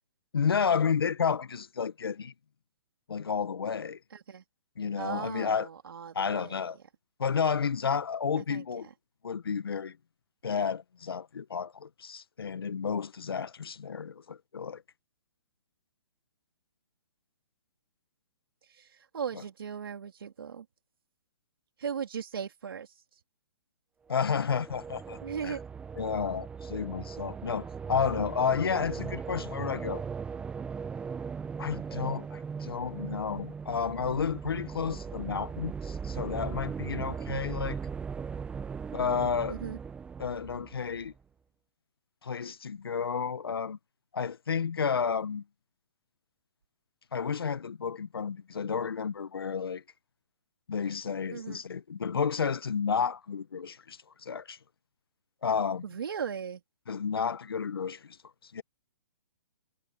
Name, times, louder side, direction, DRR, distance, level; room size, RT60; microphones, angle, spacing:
voice 1, 0.3-2.3 3.1-4.0 4.8-5.7 6.1-6.8 7.2-8.9 9.2-10.0 10.4-14.8 24.1-25.6 26.0-30.0 31.6-37.8 38.9-39.6 40.2-41.1 42.2-43.8 44.1-45.4 47.1-49.8 50.7-54.6 55.4-55.8 56.9-58.2 58.4-58.6, left 6 dB, 85° left, 1.3 m, -31 dB
voice 2, 4.1-4.4 5.0-6.6 8.4-8.6 18.7-20.7 21.8-22.9 25.2-25.6 39.5-39.8 51.3-51.6 55.8-56.6, right 7 dB, 75° right, 3.2 m, -37 dB
sound 1, 24.2-41.2, right 6 dB, 10° right, 0.8 m, -39 dB
hypercardioid pair, 145°, 12 cm